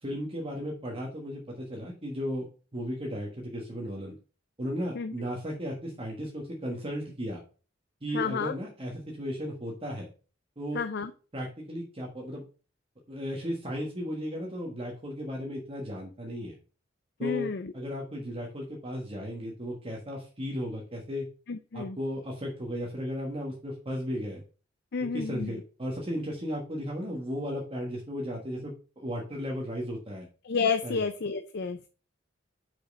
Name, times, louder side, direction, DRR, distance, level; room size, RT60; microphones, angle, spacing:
voice 1, 0.0-2.5 2.7-4.2 4.6-7.4 8.0-10.1 10.6-10.8 11.3-12.4 13.1-16.6 17.2-21.3 21.7-24.4 25.1-30.3 30.8-31.0, equal, 30° right, -1 dB, 1.4 m, -35 dB
voice 2, 8.1-8.5 10.7-11.1 17.2-17.7 21.5-22.0 24.9-25.6 30.4-31.8, left 5 dB, 60° left, 9 dB, 0.5 m, -30 dB
5.9 x 5.2 x 5.3 m, 0.37 s
head